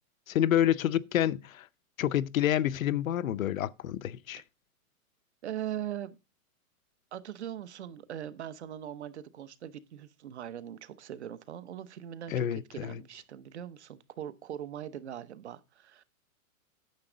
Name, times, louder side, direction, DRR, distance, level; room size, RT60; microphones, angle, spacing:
voice 1, 0.3-1.7 2.0-4.4 12.3-13.0, left 11 dB, 65° left, 0.7 m, -28 dB
voice 2, 5.4-6.2 7.1-16.0, right 10 dB, 50° right, 0.9 m, -41 dB
9.6 x 7.2 x 3.8 m
hypercardioid pair, 175°, 44 cm